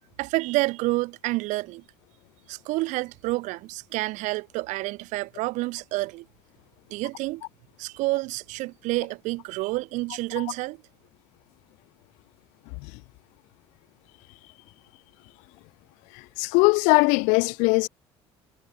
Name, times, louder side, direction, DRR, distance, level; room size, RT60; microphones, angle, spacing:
voice 1, 0.2-1.8 2.5-6.3 6.9-7.4 7.8-10.8, right 21 dB, 60° right, 0.7 m, -29 dB
voice 2, 16.4-17.9, left 31 dB, 60° left, 0.5 m, -20 dB
figure-of-eight pair, 55°, 14 cm